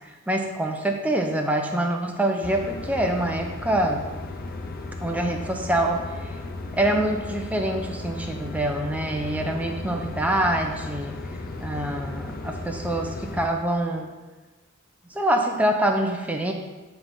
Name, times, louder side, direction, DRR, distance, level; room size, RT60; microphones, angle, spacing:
voice 1, 0.3-4.1 5.0-6.0 6.7-11.2 11.6-14.1 15.1-16.5, right 1 dB, 5° right, 2 dB, 0.6 m, -25 dB
sound 1, 2.4-13.5, left 2 dB, 45° left, 0.6 m, -35 dB
9.5 x 3.4 x 5.3 m, 1.3 s
head